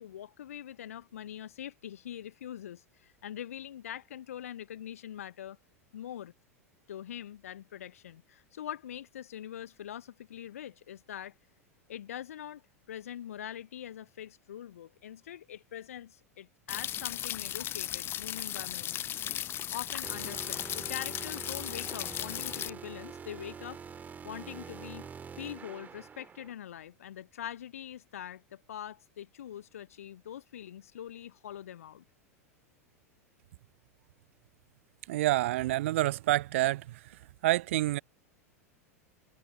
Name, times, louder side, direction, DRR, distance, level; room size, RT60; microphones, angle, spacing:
voice 1, 0.0-5.6 5.9-6.3 6.9-11.3 11.9-12.6 12.9-19.1 19.7-23.8 24.2-25.1 25.4-32.0, left 10 dB, 65° left, 1.2 m, -43 dB
sound 1, 16.7-22.7, left 11 dB, 25° left, 0.6 m, -36 dB
sound 2, 20.0-26.5, right 6 dB, 20° right, 2.8 m, -45 dB
voice 2, 35.1-37.0 37.4-38.0, right 16 dB, 55° right, 0.4 m, -27 dB
figure-of-eight pair, 85°, 8 cm